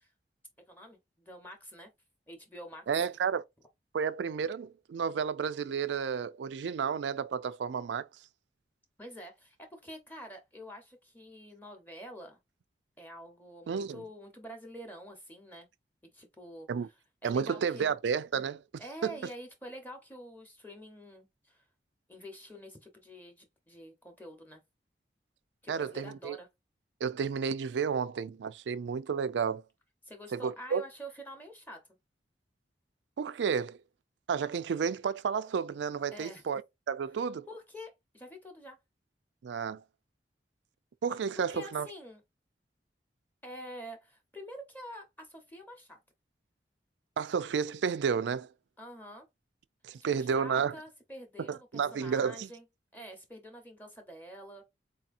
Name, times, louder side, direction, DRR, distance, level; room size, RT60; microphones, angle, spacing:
voice 1, 0.7-1.9 2.3-2.9 9.0-12.4 13.0-15.7 16.1-16.7 17.2-17.9 18.8-21.6 22.1-24.6 25.6-26.5 30.0-31.8 36.1-36.4 37.5-38.8 41.4-42.2 43.4-46.0 48.8-49.3 50.0-52.6 52.9-54.6, equal, 10° left, 0.7 m, -47 dB
voice 2, 2.9-3.4 3.9-8.1 13.7-14.0 16.7-16.9 17.2-18.6 19.0-19.1 25.7-26.4 27.0-29.6 30.3-30.8 33.2-33.8 34.3-36.6 36.9-37.5 39.4-39.8 41.0-41.9 47.2-48.5 49.8-50.8 51.5-52.5, right 6 dB, 85° right, 0.4 m, -31 dB
4.1 x 2.8 x 2.5 m
head